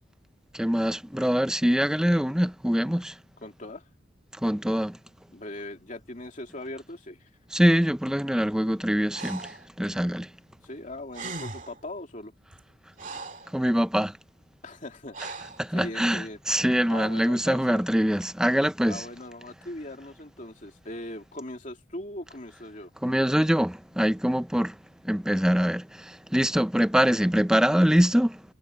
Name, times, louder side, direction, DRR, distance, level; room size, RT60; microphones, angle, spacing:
voice 1, 0.5-3.2 4.4-5.0 7.5-10.3 13.5-14.2 15.6-19.1 23.0-24.8 25.0-28.4, equal, 5° right, 0.5 m, -24 dB
voice 2, 3.4-3.9 5.3-7.3 10.6-12.3 14.6-16.4 16.9-17.8 18.9-22.9, left 1 dB, 40° left, 2.9 m, -40 dB
Breathing, 9.1-9.7 10.8-10.9 11.1-11.8 12.5-13.5 15.1-15.6, right 3 dB, 40° right, 2.4 m, -39 dB
head